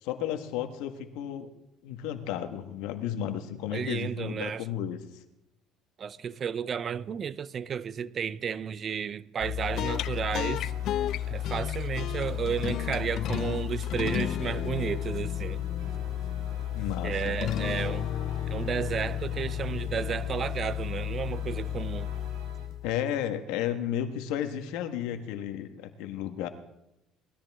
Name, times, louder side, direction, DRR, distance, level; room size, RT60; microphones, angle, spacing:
voice 1, 0.0-1.5 1.8-5.0 16.7-17.3 22.8-26.5, left 10 dB, 85° left, 1.5 m, -33 dB
voice 2, 3.7-4.6 6.0-10.7 11.3-15.7 17.0-18.1 18.5-22.1, right 7 dB, 40° right, 0.6 m, -32 dB
sound 1, 9.4-23.0, left 11 dB, 60° left, 0.5 m, -32 dB
sound 2, 9.6-22.7, right 5 dB, 65° right, 4.0 m, -49 dB
19.5 x 13.5 x 3.7 m
cardioid pair, 105°, 0 cm